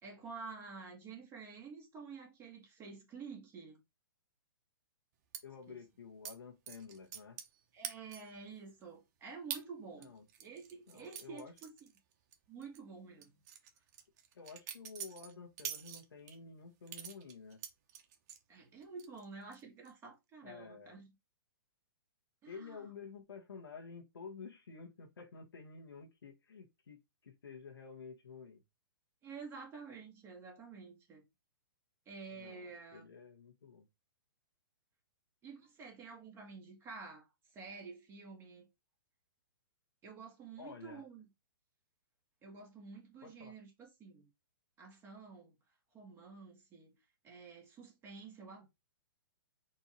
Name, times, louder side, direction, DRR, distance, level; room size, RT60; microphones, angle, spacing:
voice 1, 0.0-3.8 5.7-5.8 7.7-10.1 10.4-11.7 12.5-13.3 18.5-21.1 22.4-22.8 29.2-31.2 32.0-33.1 35.4-37.3 37.5-38.7 40.0-41.3 42.4-44.3 44.8-45.6 45.9-47.0 47.2-48.7, right 5 dB, 20° right, 1.6 m, -50 dB
sound 1, 5.3-5.4 6.2-6.4 6.7-7.6 7.8-8.4 8.8-8.9 9.5-9.6 10.0-12.4 12.6-12.8 13.2-16.4 16.9-18.4 18.8-19.2 19.5-19.9, right 9 dB, 45° right, 0.9 m, -45 dB
voice 2, 5.4-7.4 10.0-10.2 10.9-11.5 14.3-17.6 20.4-21.0 22.5-28.6 32.3-33.9 40.6-41.1 43.2-43.5, left 5 dB, 90° left, 1.4 m, -51 dB
4.5 x 2.7 x 4.4 m
hypercardioid pair, 140°, 12 cm